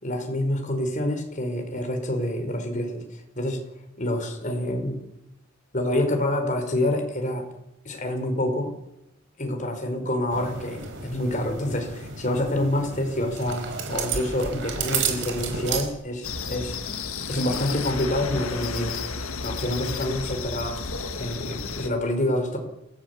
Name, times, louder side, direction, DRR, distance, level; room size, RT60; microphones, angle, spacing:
voice 1, 0.0-3.6 4.0-5.0 5.7-7.5 7.9-8.7 9.4-13.6 13.9-16.8 17.3-20.8 21.2-22.6, left 1 dB, 35° left, 4 dB, 5.2 m, -27 dB
sound 1, 10.3-15.9, right 5 dB, 55° right, 4.9 m, -32 dB
sound 2, 16.2-21.9, left 4 dB, 70° left, 2.0 m, -32 dB
28.0 x 15.5 x 8.4 m, 0.90 s
head